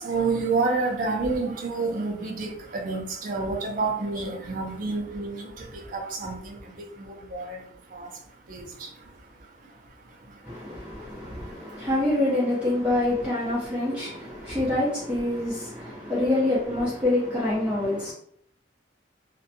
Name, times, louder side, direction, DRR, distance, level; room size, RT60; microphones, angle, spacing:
voice 1, 0.0-5.4 5.9-6.5 7.0-7.4 8.0-8.1 8.5-8.6, right 3 dB, 45° right, 2 dB, 0.4 m, -28 dB
voice 2, 10.4-18.1, left 1 dB, 5° right, -9 dB, 0.7 m, -26 dB
2.6 x 2.1 x 2.7 m, 0.67 s
head